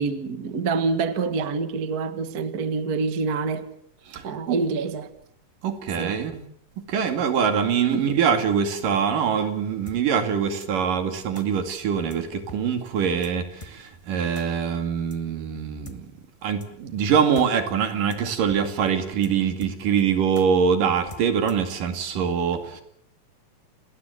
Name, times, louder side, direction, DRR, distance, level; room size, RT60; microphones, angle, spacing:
voice 1, 0.0-3.7 4.2-5.1 6.0-6.2 7.9-8.0, right 4 dB, 40° right, 1.4 m, -26 dB
voice 2, 4.1-4.6 5.6-6.4 6.9-16.1 16.4-22.8, right 7 dB, 70° right, 3.9 m, -24 dB
sound 1, 9.9-10.0 10.6-10.7 11.3-11.5 12.1-12.2 12.5-12.6 12.9-13.0 13.2-13.3 13.6-13.7 14.3-14.5 15.1-15.2 15.8-16.0 16.6-16.7 17.0-17.1 17.3-17.5 17.7-17.8 18.1-18.2 18.5-18.6 18.9-19.0 19.2-19.3 19.6-20.0 20.3-20.5 21.1-21.7, left 1 dB, 15° left, 1.2 m, -42 dB
28.5 x 20.0 x 8.0 m
omnidirectional pair, 3.9 m